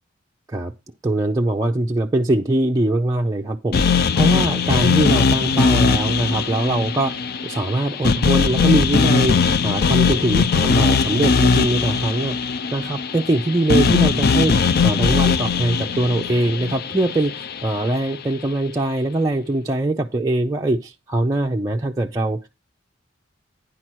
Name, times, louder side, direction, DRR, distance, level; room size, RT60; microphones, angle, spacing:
voice 1, 1.0-22.4, right 1 dB, 20° right, 0.5 m, -22 dB
sound 1, 3.7-17.9, left 5 dB, 55° left, 0.4 m, -20 dB
9.9 x 4.4 x 6.1 m
head